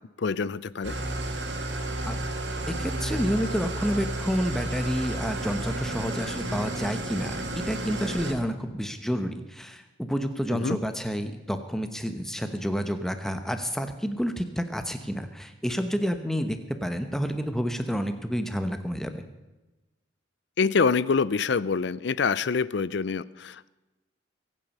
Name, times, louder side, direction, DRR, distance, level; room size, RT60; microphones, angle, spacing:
voice 1, 0.2-0.9 10.5-10.8 20.6-23.7, left 5 dB, 60° left, 19 dB, 0.5 m, -26 dB
Engine starting / Idling, 0.8-8.3, right 1 dB, 60° right, 2.3 m, -32 dB
voice 2, 2.7-19.2, equal, ahead, 8 dB, 1.0 m, -29 dB
22.5 x 9.0 x 5.5 m, 1.1 s
head